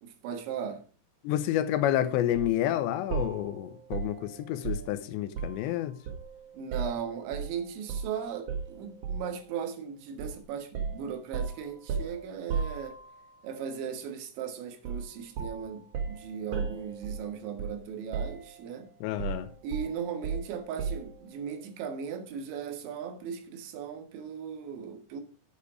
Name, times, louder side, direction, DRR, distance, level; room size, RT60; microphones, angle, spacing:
voice 1, 0.0-0.8 6.6-13.0 13.4-18.9 19.6-25.2, right 7 dB, 85° right, 3.8 m, -37 dB
voice 2, 1.2-6.0 19.0-19.5, left 12 dB, 85° left, 3.0 m, -29 dB
sound 1, 2.3-2.6 3.1-5.7 6.0-7.5 7.9-8.1 8.5-9.4 10.2-10.4 10.7-13.3 14.8-15.1 15.3-17.9 18.1-18.7 19.2-21.2, right 5 dB, 60° right, 1.7 m, -35 dB
8.9 x 8.2 x 4.9 m
omnidirectional pair, 5.1 m